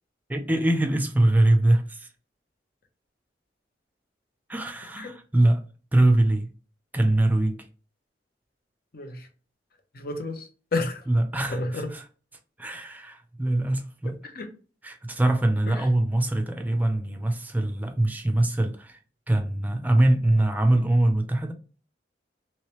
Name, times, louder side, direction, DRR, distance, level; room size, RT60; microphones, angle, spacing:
voice 1, 0.3-2.1 4.5-5.6 5.9-6.5 6.9-7.7 11.1-12.0 12.6-14.2 14.8-19.0 19.3-21.5, right 1 dB, 10° right, 0.5 m, -23 dB
voice 2, 8.9-9.3 9.9-11.0 11.5-11.9 14.3-14.5 15.7-15.9, left 2 dB, 55° left, 0.8 m, -31 dB
3.1 x 3.1 x 3.0 m
head